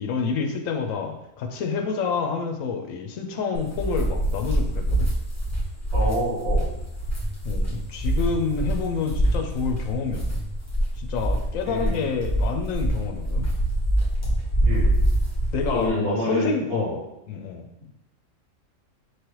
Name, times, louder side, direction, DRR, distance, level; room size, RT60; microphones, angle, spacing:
voice 1, 0.0-5.1 7.4-10.4 11.0-13.5 15.5-17.0 17.3-17.7, left 5 dB, 80° left, 4 dB, 1.0 m, -28 dB
sound 1, 3.5-15.9, right 1 dB, 15° left, 1.0 m, -25 dB
voice 2, 5.9-6.7 11.7-12.0 14.6-14.9 15.7-17.0, left 1 dB, 55° right, -8 dB, 1.9 m, -27 dB
4.6 x 3.2 x 3.0 m, 0.86 s
omnidirectional pair, 1.4 m